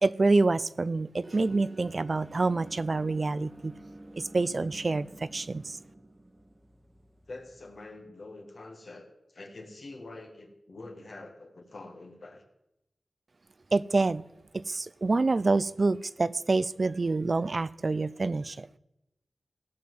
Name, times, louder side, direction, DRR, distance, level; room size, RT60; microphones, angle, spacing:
voice 1, 0.0-3.7 4.2-5.8 13.7-14.3 14.5-18.7, right 3 dB, 55° right, 17 dB, 0.4 m, -27 dB
sound 1, 1.2-7.8, right 1 dB, 30° right, 1.2 m, -50 dB
voice 2, 7.3-12.4, left 2 dB, 70° left, 4 dB, 1.9 m, -46 dB
16.5 x 5.6 x 7.7 m, 0.89 s
cardioid pair, 45°, 0 cm